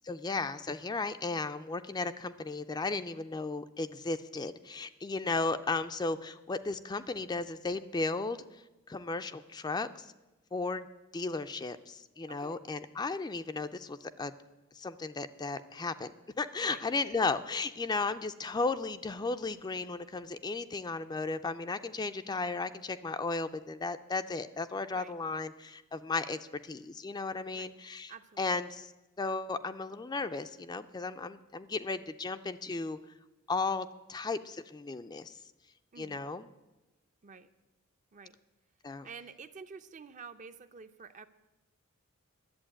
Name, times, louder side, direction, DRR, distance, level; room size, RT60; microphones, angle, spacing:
voice 1, 0.0-8.6 8.9-10.1 10.5-10.9 11.1-14.3 14.7-16.1 16.4-28.9 29.2-33.0 33.5-35.3 36.0-36.5 38.8-39.1, left 3 dB, 20° left, 10 dB, 0.4 m, -35 dB
voice 2, 28.1-28.6 35.9-36.2 37.2-37.5 38.1-38.4 39.0-41.3, right 5 dB, 35° right, 10 dB, 0.5 m, -49 dB
11.5 x 7.9 x 8.7 m, 1.1 s
head